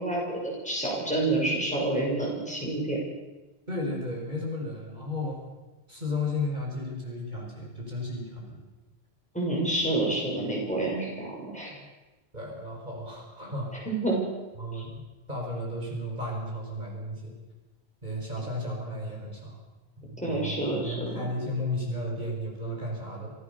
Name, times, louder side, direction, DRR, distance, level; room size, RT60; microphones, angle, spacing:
voice 1, 0.0-3.0 9.3-11.8 13.7-14.2 14.7-14.8 20.2-21.3, right 2 dB, 5° left, -3 dB, 6.6 m, -28 dB
voice 2, 3.7-5.4 5.9-8.6 12.3-13.8 14.6-14.9 15.3-17.3 18.0-19.6 20.0-23.3, left 1 dB, 45° right, -1 dB, 5.1 m, -34 dB
26.0 x 15.5 x 6.7 m, 1.1 s
omnidirectional pair, 1.1 m